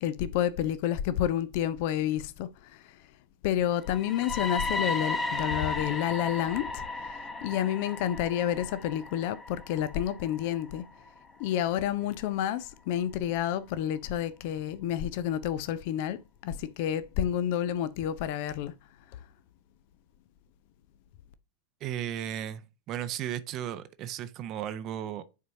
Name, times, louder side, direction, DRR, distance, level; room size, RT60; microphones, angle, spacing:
voice 1, 0.0-2.8 3.4-10.9 11.4-18.7, left 10 dB, 50° left, 0.5 m, -30 dB
sound 1, 3.8-11.8, left 3 dB, 15° left, 1.0 m, -35 dB
voice 2, 21.8-22.6 22.9-25.2, right 11 dB, 35° right, 0.6 m, -35 dB
9.9 x 4.3 x 2.7 m
figure-of-eight pair, 90°, 0 cm